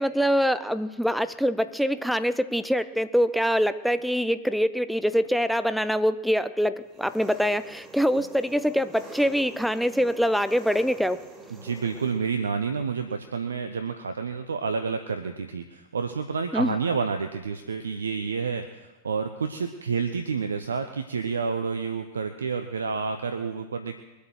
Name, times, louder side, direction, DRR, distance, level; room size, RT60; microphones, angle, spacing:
voice 1, 0.0-11.2 16.5-16.8, equal, ahead, 13 dB, 0.7 m, -24 dB
Engine, 6.9-12.1, right 3 dB, 20° right, 4.3 m, -46 dB
voice 2, 11.5-24.0, right 5 dB, 70° right, 8 dB, 0.8 m, -29 dB
22.5 x 8.3 x 6.3 m, 1.1 s
figure-of-eight pair, 90°, 0 cm